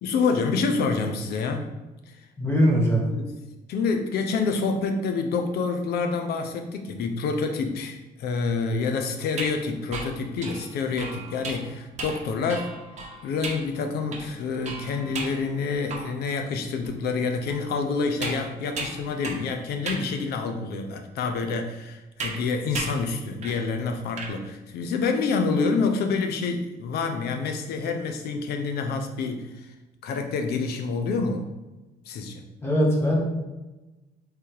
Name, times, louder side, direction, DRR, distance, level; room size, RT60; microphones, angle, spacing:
voice 1, 0.0-1.6 3.0-3.3 3.7-12.7 13.2-29.5 30.0-31.5 32.1-32.4, left 4 dB, 70° left, 5 dB, 0.7 m, -27 dB
voice 2, 2.4-3.0 32.6-33.2, equal, 15° left, -3 dB, 1.4 m, -21 dB
sound 1, 9.2-16.4 16.8-16.9 17.5-19.5 19.9-20.1 20.8-20.9 22.2-22.4 22.7-23.0 23.4-23.7 23.9-24.3, right 3 dB, 45° right, 0.9 m, -36 dB
3.4 x 3.4 x 4.6 m, 1.1 s
cardioid pair, 110°, 17 cm